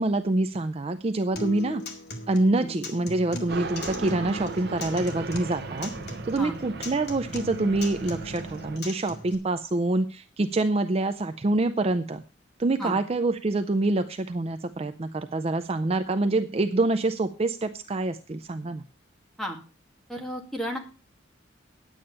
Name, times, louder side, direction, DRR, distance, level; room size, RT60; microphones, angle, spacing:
voice 1, 0.0-1.8 2.3-5.9 6.2-12.2 12.6-18.8, right 2 dB, 30° right, 10 dB, 0.5 m, -26 dB
Acoustic guitar, 1.4-9.3, left 2 dB, 60° left, 2.1 m, -39 dB
sound 1, 3.5-8.8, right 3 dB, 55° right, 0.9 m, -37 dB
voice 2, 20.1-20.8, equal, ahead, 1 dB, 2.1 m, -33 dB
10.0 x 8.6 x 5.4 m, 0.34 s
head